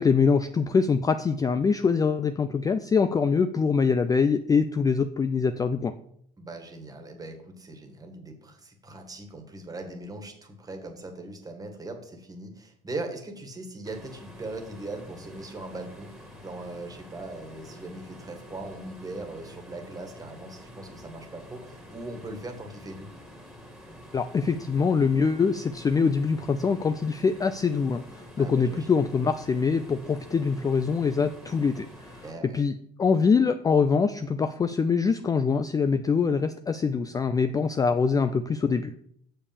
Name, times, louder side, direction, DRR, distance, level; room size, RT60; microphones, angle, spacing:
voice 1, 0.0-5.9 24.1-32.2 32.5-32.7 33.0-38.9, left 5 dB, 20° left, 10 dB, 0.4 m, -24 dB
voice 2, 6.4-16.1 16.4-23.1 28.4-29.0 32.2-32.6, right 2 dB, 20° right, 4 dB, 1.8 m, -40 dB
sound 1, 13.8-32.3, equal, ahead, 2.1 m, -47 dB
6.7 x 5.5 x 7.0 m, 0.69 s
cardioid pair, 115°, 19 cm